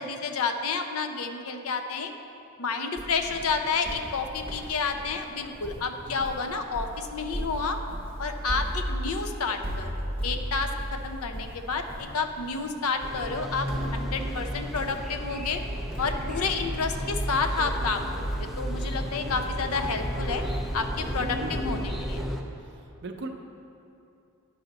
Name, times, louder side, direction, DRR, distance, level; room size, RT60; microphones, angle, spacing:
voice 1, 0.0-2.1 2.6-7.8 8.2-15.6 16.0-20.4 20.7-22.2, left 4 dB, 75° left, 6 dB, 0.6 m, -30 dB
sound 1, 3.0-22.5, right 1 dB, 25° left, 1.3 m, -37 dB
sound 2, 13.0-22.4, equal, ahead, 0.4 m, -33 dB
voice 2, 21.2-21.9 22.6-23.3, right 3 dB, 50° right, 4 dB, 0.6 m, -40 dB
10.5 x 5.6 x 4.0 m, 2.7 s
head